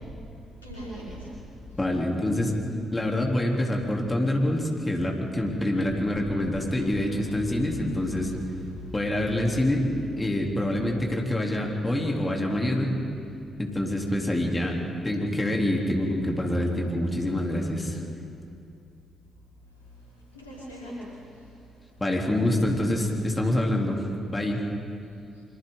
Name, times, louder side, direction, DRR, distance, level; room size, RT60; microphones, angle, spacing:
voice 1, 0.6-1.4 1.7-1.8 6.2-8.1 8.7-8.9 20.0-21.5 25.3-25.4, equal, 90° left, -7 dB, 4.8 m, -41 dB
voice 2, 1.7-2.6 2.9-8.3 8.9-9.8 10.2-12.9 13.6-14.8 15.0-18.0 22.0-24.0 24.3-24.6, left 1 dB, 20° left, 0 dB, 3.6 m, -26 dB
27.5 x 25.5 x 4.0 m, 2.5 s
figure-of-eight pair, 40°, 0 cm